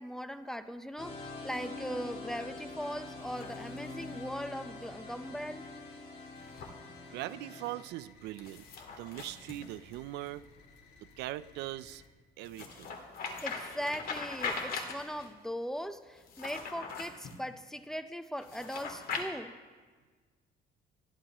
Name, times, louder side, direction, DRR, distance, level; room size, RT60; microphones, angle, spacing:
voice 1, 0.0-5.6 13.4-19.5, equal, 5° left, 10 dB, 0.7 m, -39 dB
sound 1, 1.0-7.8, left 3 dB, 40° left, 4.2 m, -45 dB
sound 2, 3.2-4.2 6.4-6.7 8.4-10.3 12.4-15.3 16.2-17.4 18.4-19.2, left 4 dB, 60° left, 2.0 m, -41 dB
sound 3, 3.8-12.1, left 4 dB, 75° left, 2.3 m, -60 dB
voice 2, 7.1-8.6 9.0-10.5 11.0-12.0 12.4-13.0, right 15 dB, 85° right, 16 dB, 0.5 m, -41 dB
28.5 x 11.0 x 3.0 m, 1.4 s
cardioid pair, 110°, 17 cm